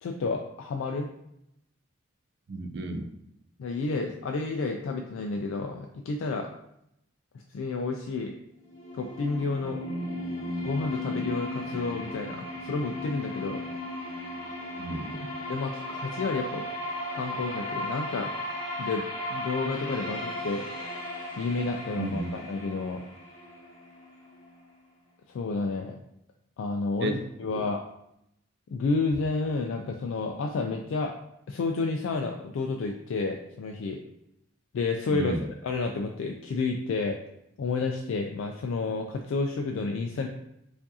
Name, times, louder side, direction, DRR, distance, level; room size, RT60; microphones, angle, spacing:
voice 1, 0.0-1.1 3.6-6.5 7.5-8.3 8.9-9.8 10.6-13.6 15.5-16.7 17.1-18.3 18.8-20.7 21.4-23.0 25.3-26.0 26.6-27.8 28.7-31.1 31.5-34.0 34.7-37.2 37.6-40.3, left 3 dB, 70° left, 3 dB, 0.3 m, -30 dB
voice 2, 2.5-3.1 14.8-15.3 22.0-22.3 27.0-27.2 35.1-35.4, right 2 dB, 55° right, 5 dB, 0.4 m, -32 dB
sound 1, 8.6-24.5, left 1 dB, 25° left, 0.9 m, -36 dB
4.5 x 2.5 x 2.7 m, 0.80 s
head